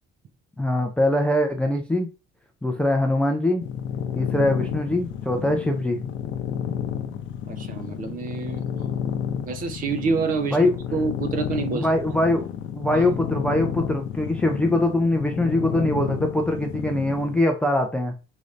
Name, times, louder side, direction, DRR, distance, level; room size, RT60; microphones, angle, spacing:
voice 1, 0.6-2.1 2.6-3.6 4.1-6.0 10.5-10.8 11.7-12.5 12.7-18.1, left 1 dB, 5° left, 0.4 m, -22 dB
sound 1, 3.6-17.4, left 9 dB, 65° left, 0.6 m, -31 dB
voice 2, 7.5-9.0 9.4-10.6 10.9-11.9 12.9-13.0, right 4 dB, 40° right, 0.6 m, -27 dB
5.0 x 2.6 x 3.1 m
cardioid pair, 175°, 21 cm